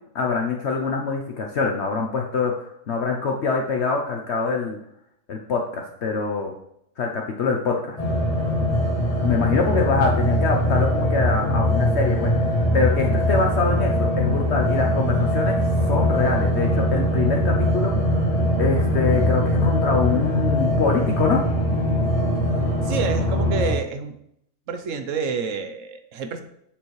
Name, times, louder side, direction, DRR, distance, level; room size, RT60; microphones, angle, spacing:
voice 1, 0.1-4.8 5.3-6.5 7.0-8.0 8.4-8.5 9.2-12.3 12.7-18.3 18.6-21.4, left 4 dB, 60° left, 1 dB, 1.0 m, -24 dB
sound 1, 8.0-23.7, equal, 30° left, 1.3 m, -21 dB
voice 2, 22.8-24.1 24.7-26.4, right 5 dB, 75° right, 7 dB, 1.2 m, -28 dB
7.2 x 6.9 x 3.2 m, 0.74 s
omnidirectional pair, 1.4 m